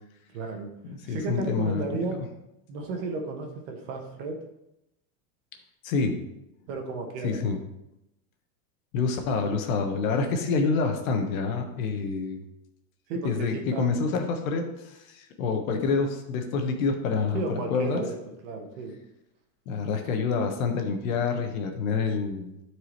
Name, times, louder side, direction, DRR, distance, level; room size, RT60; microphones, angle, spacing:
voice 1, 0.3-0.7 1.0-2.2 2.7-4.4 6.7-7.5 13.1-13.9 17.3-18.2 18.4-19.0, right 3 dB, 50° right, 2 dB, 1.5 m, -33 dB
voice 2, 0.9-2.1 5.8-6.2 7.2-7.6 8.9-12.4 13.2-18.0 19.7-22.5, left 4 dB, 60° left, 4 dB, 1.4 m, -27 dB
12.5 x 4.8 x 3.2 m, 0.86 s
supercardioid pair, 175°, 47 cm